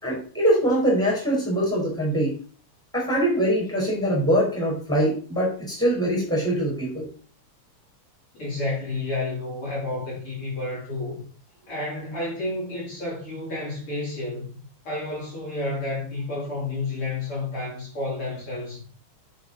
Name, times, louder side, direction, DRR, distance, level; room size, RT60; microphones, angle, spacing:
voice 1, 0.0-2.3 2.9-7.1, right 1 dB, ahead, 4.3 m, -23 dB
voice 2, 8.3-11.2 11.7-14.6 14.8-18.8, left 2 dB, 45° left, 4.3 m, -30 dB
10.5 x 5.3 x 4.1 m
omnidirectional pair, 3.4 m